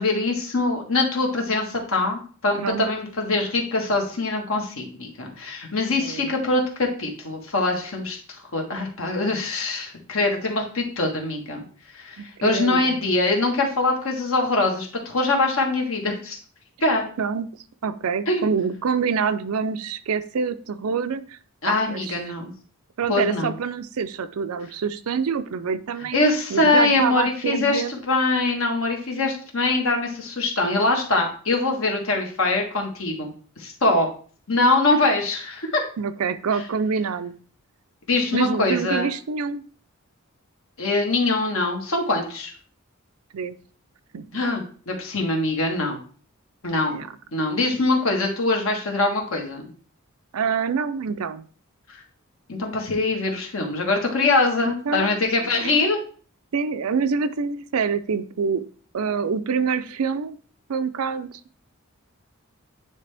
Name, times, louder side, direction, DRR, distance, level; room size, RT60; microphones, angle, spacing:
voice 1, 0.0-8.2 8.5-11.6 11.9-16.4 16.8-17.1 18.3-18.5 21.6-22.5 23.1-23.5 26.1-33.3 33.6-34.1 34.5-35.8 38.1-39.1 40.8-42.5 44.3-46.0 46.6-47.0 47.3-49.6 52.5-56.0, left 2 dB, 65° left, 1 dB, 1.5 m, -23 dB
voice 2, 6.0-6.3 12.2-13.0 17.2-17.5 17.8-21.4 21.7-22.2 23.0-26.2 26.5-27.9 36.0-37.3 38.3-39.6 43.3-43.5 44.1-44.2 46.9-47.1 50.3-51.4 54.7-55.1 55.4-55.7 56.5-58.6 58.9-60.4 60.7-61.3, right 6 dB, 80° right, 12 dB, 0.5 m, -26 dB
9.4 x 3.3 x 3.4 m, 0.42 s
head